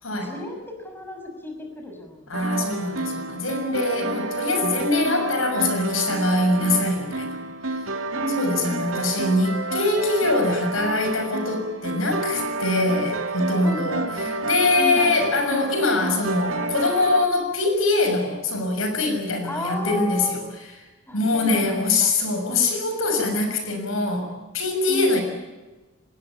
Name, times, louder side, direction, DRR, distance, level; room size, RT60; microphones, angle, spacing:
voice 1, 0.1-2.8 8.1-8.8 13.6-14.5 14.8-15.2 19.4-20.4 21.1-22.1 22.5-22.7 24.9-25.2, left 1 dB, 10° left, 3 dB, 5.8 m, -33 dB
voice 2, 2.3-7.4 7.7-7.9 8.4-14.0 14.4-20.4 21.1-25.2, left 2 dB, 80° left, 6 dB, 6.5 m, -23 dB
sound 1, 2.3-17.3, right 2 dB, 80° right, 2.2 m, -30 dB
25.5 x 19.5 x 8.6 m, 1.2 s
head